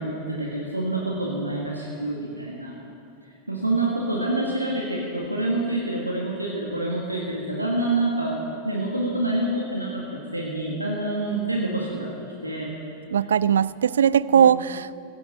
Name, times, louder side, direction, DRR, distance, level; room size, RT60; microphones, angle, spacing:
voice 1, 0.0-2.8 3.2-8.3 8.6-12.1 12.4-12.7 14.3-14.5, right 2 dB, 85° right, -3 dB, 1.8 m, -27 dB
voice 2, 13.1-15.0, right 8 dB, 65° right, 19 dB, 0.3 m, -19 dB
16.0 x 9.7 x 7.5 m, 2.5 s
figure-of-eight pair, 90°, 0 cm